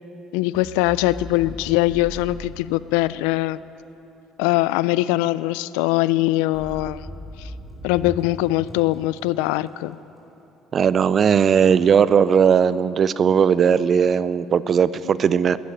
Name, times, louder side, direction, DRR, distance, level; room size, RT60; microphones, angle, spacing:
voice 1, 0.3-3.6 4.4-7.1 7.4-7.5 7.8-10.0, left 17 dB, 85° left, 18 dB, 0.3 m, -22 dB
sound 1, 0.5-3.5 6.5-10.0, equal, 5° left, 4.4 m, -39 dB
voice 2, 10.7-15.6, right 7 dB, 45° right, 17 dB, 0.5 m, -18 dB
11.5 x 11.0 x 9.9 m, 3.0 s
supercardioid pair, 85°, 0 cm